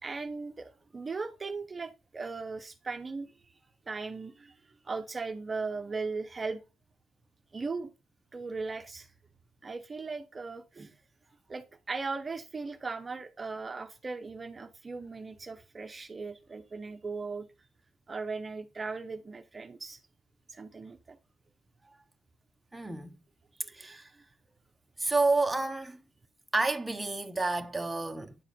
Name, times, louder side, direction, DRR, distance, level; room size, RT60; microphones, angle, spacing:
voice 1, 0.0-3.6 3.9-4.6 4.8-6.6 7.5-7.9 8.3-9.1 9.6-11.0 11.5-17.4 18.1-20.0 20.5-21.2 23.6-23.9, right 4 dB, 30° right, 1.1 m, -38 dB
voice 2, 22.7-23.2 23.8-24.1 25.0-26.0 26.5-28.4, right 3 dB, 10° right, 1.2 m, -29 dB
10.0 x 4.9 x 5.2 m
cardioid pair, 90°, 0 cm